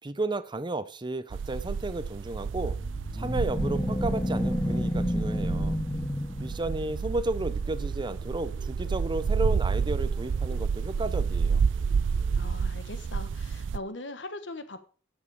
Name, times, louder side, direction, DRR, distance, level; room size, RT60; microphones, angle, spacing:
voice 1, 0.0-2.8 3.1-5.8 6.4-11.6, right 2 dB, 25° right, 0.6 m, -33 dB
sound 1, 1.3-13.8, right 5 dB, 90° right, 0.4 m, -30 dB
sound 2, 2.7-7.1, left 1 dB, 15° left, 0.9 m, -30 dB
sound 3, 7.4-12.4, equal, 50° left, 3.3 m, -53 dB
voice 2, 12.3-14.8, left 2 dB, 70° left, 1.2 m, -40 dB
12.5 x 7.4 x 4.8 m
head